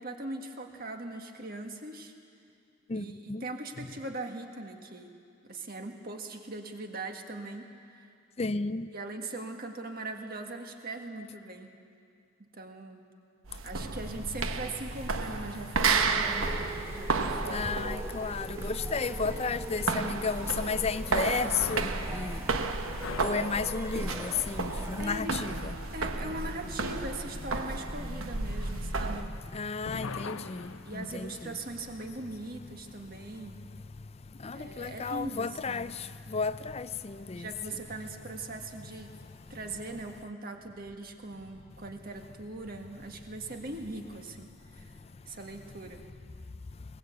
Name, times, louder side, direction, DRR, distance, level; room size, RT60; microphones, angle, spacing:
voice 1, 0.0-2.1 2.9-5.2 5.5-8.1 8.9-11.7 12.4-13.0 13.6-17.9 25.0-25.4 25.9-29.3 30.8-33.6 34.5-35.9 37.3-39.1 39.5-44.9 45.3-46.0, right 2 dB, 45° right, 1.7 m, -40 dB
voice 2, 2.9-3.4 8.4-8.9 17.5-22.7 23.2-25.7 28.8-29.0 29.5-31.3 34.4-37.5, left 4 dB, 30° left, 0.4 m, -33 dB
sound 1, 13.5-29.3, right 4 dB, 75° right, 1.1 m, -33 dB
sound 2, 15.9-25.2, right 1 dB, 10° right, 0.7 m, -42 dB
sound 3, 21.5-29.5 29.8-32.1, left 4 dB, 80° left, 0.7 m, -45 dB
20.5 x 18.5 x 8.2 m
head